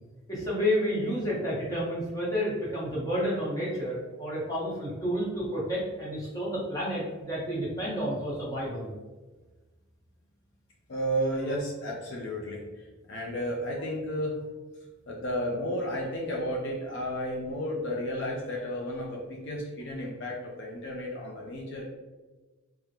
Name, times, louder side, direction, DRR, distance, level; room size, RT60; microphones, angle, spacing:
voice 1, 0.3-8.9, equal, 15° left, -7 dB, 1.0 m, -30 dB
voice 2, 10.9-12.6 13.1-14.4 15.1-21.9, equal, 60° left, -2 dB, 0.5 m, -32 dB
3.5 x 2.1 x 2.8 m, 1.3 s
head